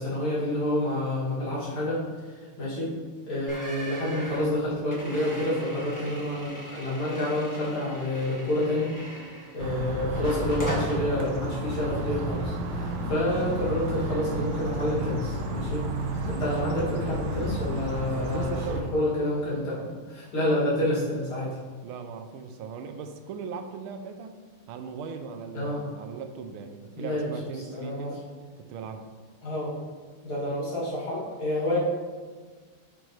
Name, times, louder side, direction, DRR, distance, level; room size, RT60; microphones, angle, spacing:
voice 1, 0.0-2.9 3.3-8.9 9.5-15.8 16.3-18.5 18.9-21.6 25.5-25.8 27.0-28.1 29.4-29.7 30.2-31.8, left 1 dB, 75° left, -8 dB, 3.1 m, -28 dB
sound 1, 3.5-9.7 10.1-11.0, equal, 10° left, 0.9 m, -39 dB
sound 2, 9.6-18.8, right 1 dB, 60° right, 1.3 m, -32 dB
voice 2, 18.3-18.9 21.8-24.4 24.7-28.3 28.7-29.0, right 6 dB, 85° right, 7 dB, 1.5 m, -38 dB
8.1 x 5.2 x 3.1 m, 1.5 s
omnidirectional pair, 2.3 m